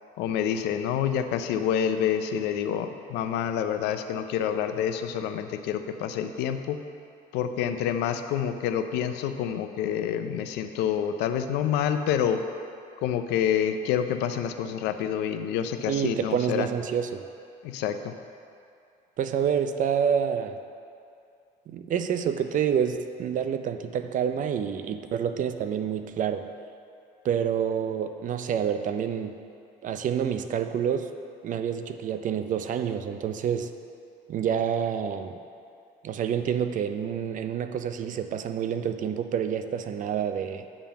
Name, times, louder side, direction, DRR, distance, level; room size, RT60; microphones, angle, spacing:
voice 1, 0.2-6.8 7.3-12.4 13.0-16.7 17.6-18.1, left 9 dB, 90° left, 8 dB, 0.5 m, -27 dB
voice 2, 15.9-17.2 19.2-20.6 21.7-26.5 27.2-29.4 29.8-31.1 31.4-33.7 34.3-35.3 36.0-40.6, right 8 dB, 50° right, 9 dB, 0.5 m, -28 dB
8.8 x 3.7 x 7.0 m, 2.5 s
cardioid pair, 110°, 17 cm